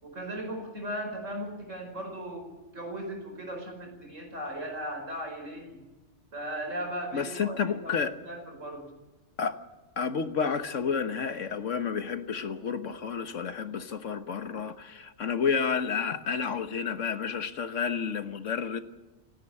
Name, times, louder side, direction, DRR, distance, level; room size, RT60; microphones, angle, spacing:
voice 1, 0.0-2.5 2.7-5.8 6.3-8.9, right 1 dB, 85° right, 2 dB, 5.5 m, -37 dB
voice 2, 7.1-8.1 9.4-9.6 10.0-18.8, left 6 dB, 85° left, 9 dB, 1.6 m, -30 dB
30.0 x 10.0 x 9.9 m, 1.1 s
omnidirectional pair, 1.3 m